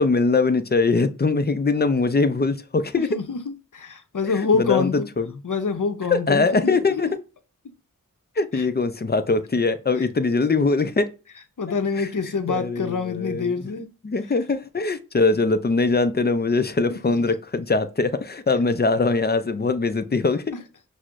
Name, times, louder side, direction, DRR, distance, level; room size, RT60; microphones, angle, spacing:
voice 1, 0.0-3.1 4.5-5.3 6.1-7.1 8.4-11.1 12.0-12.1 12.5-13.5 14.0-20.4, left 3 dB, 30° left, 0.4 m, -22 dB
voice 2, 3.1-5.1 5.4-6.5 8.5-8.7 11.6-13.9 16.9-17.3 20.5-20.6, left 5 dB, 60° left, 0.7 m, -26 dB
6.0 x 2.1 x 2.4 m
wide cardioid pair, 45°, 34 cm